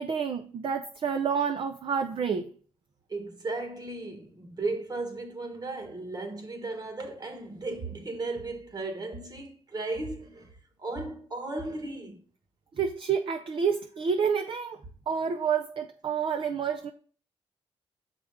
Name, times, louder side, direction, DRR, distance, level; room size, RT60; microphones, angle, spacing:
voice 1, 0.0-2.5 12.7-14.8 15.1-16.9, right 6 dB, 55° right, 0.5 m, -29 dB
voice 2, 3.1-12.2, right 2 dB, 40° right, 1.5 m, -35 dB
6.2 x 5.0 x 3.6 m
cardioid pair, 70°, 11 cm